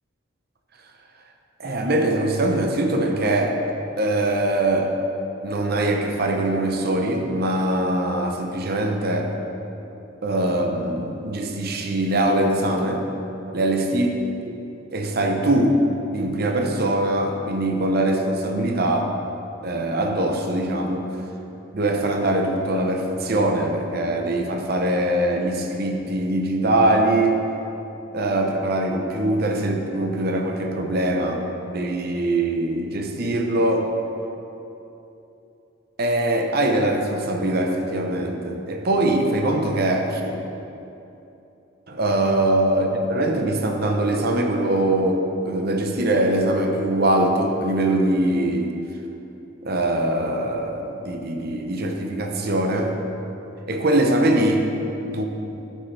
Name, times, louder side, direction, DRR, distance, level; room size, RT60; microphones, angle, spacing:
voice 1, 1.6-3.6 4.0-4.9 5.4-9.3 10.2-13.1 13.5-14.2 14.4-15.9 16.1-19.1 19.6-21.1 21.7-27.4 28.1-33.9 36.0-40.4 41.9-48.7 49.6-53.0 53.7-54.7 55.0-55.2, right 1 dB, 50° right, 3 dB, 0.8 m, -22 dB
12.0 x 6.1 x 3.3 m, 2.9 s
head